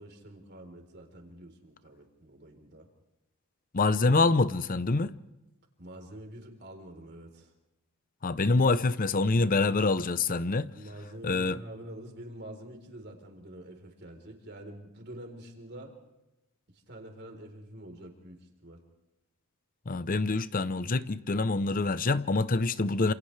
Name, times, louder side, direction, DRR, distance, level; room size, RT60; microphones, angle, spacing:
voice 1, 0.0-2.9 5.8-7.5 10.7-16.0 16.7-18.8, right 1 dB, 50° right, 4.0 m, -46 dB
voice 2, 3.7-5.1 8.2-10.7 11.2-11.6 19.9-23.1, left 3 dB, 40° left, 0.7 m, -26 dB
28.0 x 28.0 x 3.3 m
head